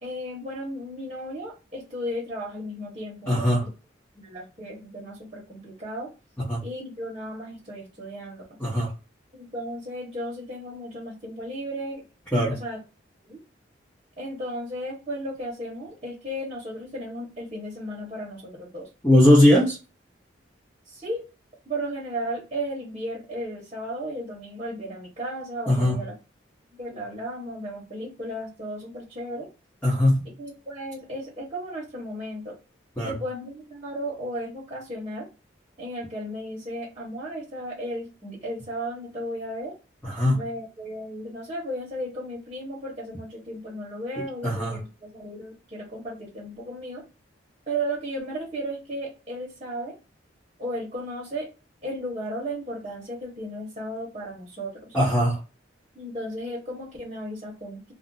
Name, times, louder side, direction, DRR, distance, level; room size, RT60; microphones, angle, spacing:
voice 1, 0.0-3.7 4.1-6.1 6.6-8.6 9.3-12.0 12.5-12.8 13.2-13.4 14.2-18.9 20.9-21.2 21.7-26.1 26.8-29.5 30.4-32.5 33.0-35.3 35.8-39.7 40.3-47.0 47.7-49.9 50.6-51.5 51.8-55.0 55.9-57.9, equal, 30° right, 1.0 m, -35 dB
voice 2, 3.3-3.7 6.4-6.6 8.6-8.9 12.3-12.6 19.0-19.8 25.7-26.0 29.8-30.3 33.0-33.1 40.0-40.5 44.2-44.8 54.9-55.4, left 1 dB, 5° left, 0.7 m, -20 dB
2.4 x 2.0 x 3.8 m
head